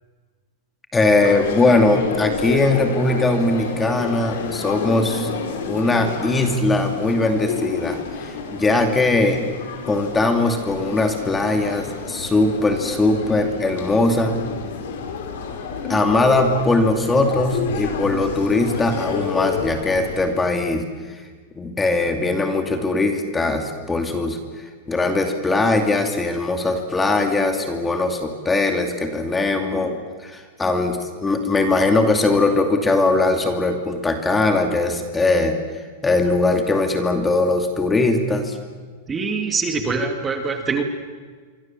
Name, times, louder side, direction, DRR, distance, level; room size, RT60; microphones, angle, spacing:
voice 1, 0.9-5.3 5.7-9.4 9.8-14.4 15.8-20.8 21.6-24.4 24.9-35.6 36.0-38.6, left 2 dB, 10° left, 5 dB, 2.5 m, -20 dB
sound 1, 1.2-20.5, left 5 dB, 70° left, 5.0 m, -30 dB
voice 2, 39.1-40.8, right 4 dB, 15° right, 6 dB, 2.5 m, -24 dB
27.0 x 24.5 x 7.4 m, 1.5 s
supercardioid pair, 145°, 0 cm